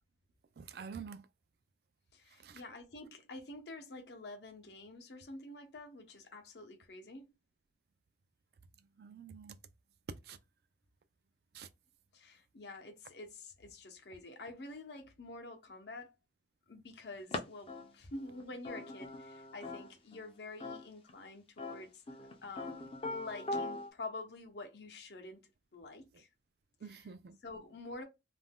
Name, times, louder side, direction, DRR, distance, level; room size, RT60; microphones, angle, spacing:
voice 1, 0.6-1.3 2.4-2.6 9.0-9.6 10.2-10.4 11.5-11.7 26.8-27.4, right 6 dB, 60° right, 0.4 m, -48 dB
voice 2, 2.1-7.3 12.1-16.1 16.7-26.3 26.9-27.0 27.4-28.0, left 2 dB, 70° left, 0.7 m, -48 dB
sound 1, 17.3-17.4 17.7-20.2 20.6-21.1 21.6-23.9, left 2 dB, 30° left, 0.5 m, -41 dB
2.5 x 2.2 x 3.4 m
head